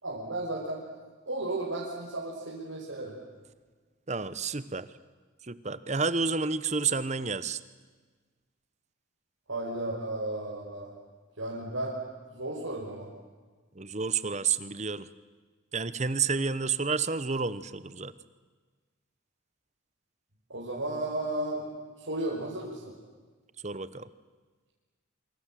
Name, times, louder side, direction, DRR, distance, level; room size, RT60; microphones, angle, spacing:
voice 1, 0.0-0.8 1.3-3.1 9.5-10.9 11.4-12.0 12.3-13.1 20.5-21.6 22.0-22.9, right 2 dB, 75° right, -5 dB, 5.5 m, -34 dB
voice 2, 4.1-4.9 5.4-7.6 13.7-15.1 15.7-18.1 23.6-24.1, right 5 dB, 35° right, 15 dB, 0.9 m, -30 dB
27.5 x 26.0 x 7.6 m, 1.4 s
head